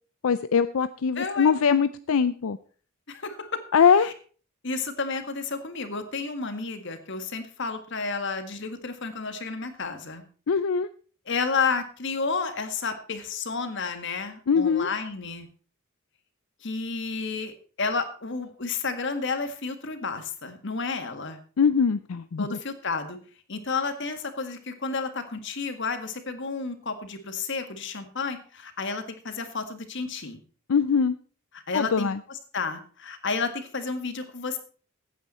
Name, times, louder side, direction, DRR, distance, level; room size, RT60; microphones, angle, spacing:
voice 1, 0.2-2.6 3.7-4.1 10.5-10.9 14.5-14.9 21.6-22.6 30.7-31.2 31.7-32.2, left 6 dB, 85° left, 13 dB, 0.5 m, -22 dB
voice 2, 1.1-1.5 3.1-3.6 4.6-10.2 11.3-15.5 16.6-21.4 22.4-23.2 23.5-30.4 31.7-32.1 32.5-34.6, left 4 dB, 60° left, 8 dB, 1.8 m, -31 dB
15.0 x 9.1 x 4.3 m, 0.41 s
head